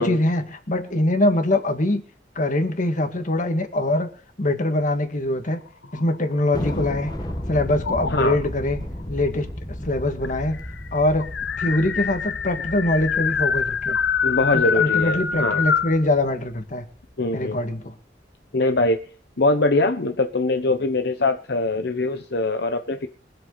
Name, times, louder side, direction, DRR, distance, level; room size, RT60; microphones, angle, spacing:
voice 1, 0.0-2.0 2.4-4.1 4.4-5.6 5.9-7.1 7.5-8.8 9.1-9.5 9.8-10.6 10.9-11.3 11.6-14.0 14.5-16.8 17.3-17.9, left 1 dB, 45° left, 2.0 m, -23 dB
sound 1, 5.8-7.3 7.8-8.5 9.5-9.6 9.8-9.9 10.2-16.0, left 7 dB, 90° left, 0.8 m, -25 dB
Thunder, 6.5-17.2, equal, 25° left, 1.6 m, -34 dB
voice 2, 14.2-15.6 17.2-17.6 18.5-19.0 19.4-23.1, left 2 dB, 65° left, 1.0 m, -22 dB
24.0 x 8.3 x 4.0 m
head